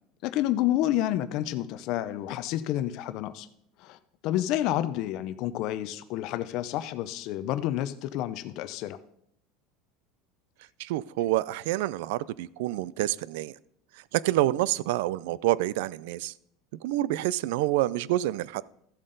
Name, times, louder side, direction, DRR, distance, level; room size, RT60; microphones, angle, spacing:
voice 1, 0.2-3.5 3.8-9.0, left 13 dB, 55° left, 12 dB, 0.5 m, -29 dB
voice 2, 10.8-13.5 14.1-16.3 16.8-18.6, right 15 dB, 80° right, 21 dB, 0.3 m, -27 dB
14.0 x 7.5 x 3.9 m, 0.72 s
supercardioid pair, 145°, 0 cm